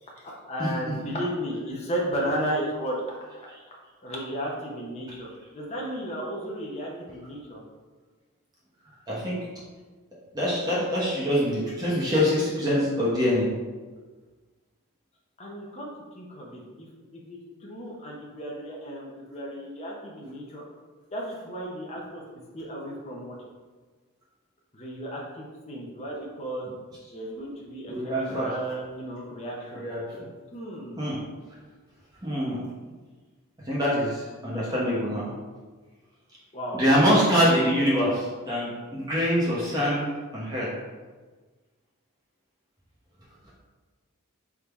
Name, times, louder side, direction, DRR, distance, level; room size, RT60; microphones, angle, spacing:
voice 1, 0.0-5.3 5.5-7.6 15.4-20.6 21.1-22.2 22.5-23.4 24.7-26.7 27.1-29.8 30.5-31.0 36.5-36.8, equal, 30° left, -2 dB, 0.6 m, -34 dB
voice 2, 0.6-0.9 9.1-9.4 10.3-13.5 27.9-28.5 29.7-30.3 31.0-31.2 32.2-32.6 33.7-35.3 36.7-40.1 40.3-40.7, equal, 15° right, -7 dB, 0.9 m, -24 dB
3.6 x 2.7 x 4.5 m, 1.3 s
head